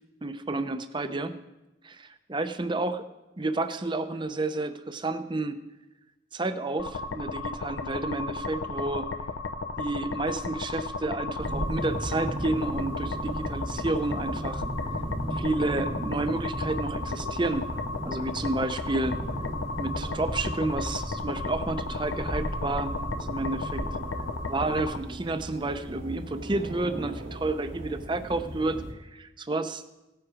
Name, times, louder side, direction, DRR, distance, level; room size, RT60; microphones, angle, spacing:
voice 1, 0.2-1.3 1.8-3.0 3.4-5.6 6.3-9.1 9.8-14.9 15.3-17.7 18.0-19.1 19.8-22.9 23.3-23.8 24.5-29.8, right 2 dB, 25° right, 10 dB, 0.6 m, -30 dB
sound 1, 6.8-25.0, left 3 dB, 80° left, 0.7 m, -34 dB
sound 2, 11.4-28.9, right 1 dB, 80° right, 1.9 m, -36 dB
17.5 x 7.7 x 4.9 m, 1.0 s
head